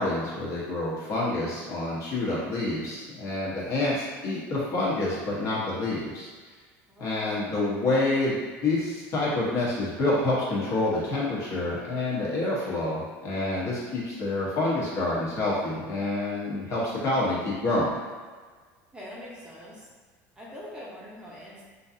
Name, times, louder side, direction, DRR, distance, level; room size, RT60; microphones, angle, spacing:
voice 1, 0.0-6.3 7.0-17.9, left 2 dB, 50° left, -6 dB, 1.2 m, -27 dB
voice 2, 6.9-8.0 18.9-19.9 20.4-21.6, equal, 10° right, -7 dB, 0.7 m, -44 dB
3.7 x 2.8 x 2.6 m, 1.5 s
cardioid pair, 135°, 7 cm